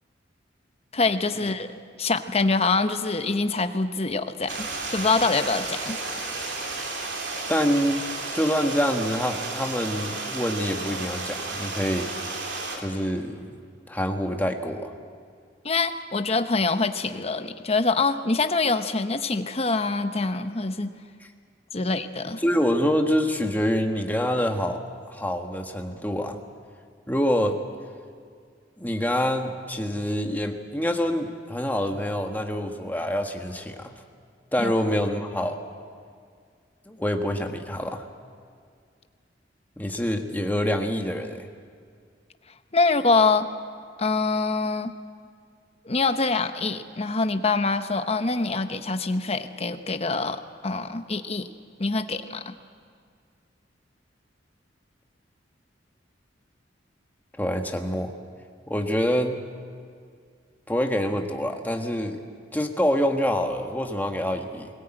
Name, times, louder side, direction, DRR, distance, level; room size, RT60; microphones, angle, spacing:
voice 1, 0.9-1.7 2.0-6.3 15.6-20.9 21.7-22.4 34.6-34.7 42.7-43.5 44.0-44.9 45.9-51.5 51.8-52.5, left 3 dB, 35° left, 9 dB, 0.9 m, -25 dB
Stream, 4.5-12.8, right 3 dB, 65° right, 3.3 m, -33 dB
voice 2, 7.5-8.0 8.3-12.1 12.8-13.6 13.9-14.9 21.8-21.9 22.4-24.8 25.1-26.4 27.1-27.5 28.8-33.9 34.5-35.6 36.9-38.0 39.8-41.5 57.4-58.1 58.7-59.4 60.7-62.2 62.5-64.7, equal, 10° left, 4 dB, 1.5 m, -26 dB
21.5 x 18.0 x 8.9 m, 2.1 s
head